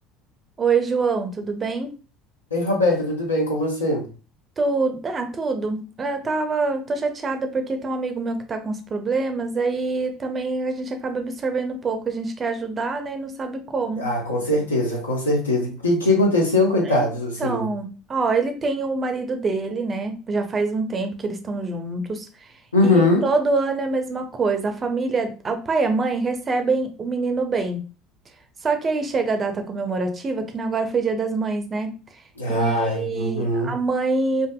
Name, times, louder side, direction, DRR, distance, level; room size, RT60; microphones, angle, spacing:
voice 1, 0.6-1.9 4.6-14.1 16.8-17.1 17.4-22.5 22.8-27.8 28.6-31.9 32.5-34.5, right 3 dB, 30° right, 0.4 m, -25 dB
voice 2, 2.5-4.1 14.0-17.6 22.7-23.3 32.4-33.7, left 2 dB, 80° left, 0.7 m, -21 dB
2.5 x 2.4 x 2.3 m
figure-of-eight pair, 65°, 0 cm